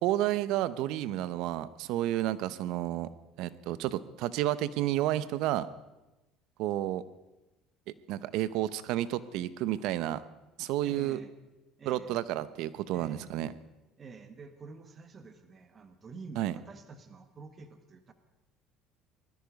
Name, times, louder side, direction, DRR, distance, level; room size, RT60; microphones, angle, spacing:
voice 1, 0.0-3.1 3.4-5.7 6.6-7.0 8.1-10.2 10.6-11.2 11.9-13.5 16.4-16.5, right 14 dB, 70° right, 16 dB, 0.8 m, -31 dB
voice 2, 10.8-11.3 11.8-12.2 12.9-13.3 14.0-18.1, right 4 dB, 35° right, 8 dB, 1.7 m, -48 dB
20.0 x 13.5 x 5.3 m, 1.0 s
supercardioid pair, 85°, 0 cm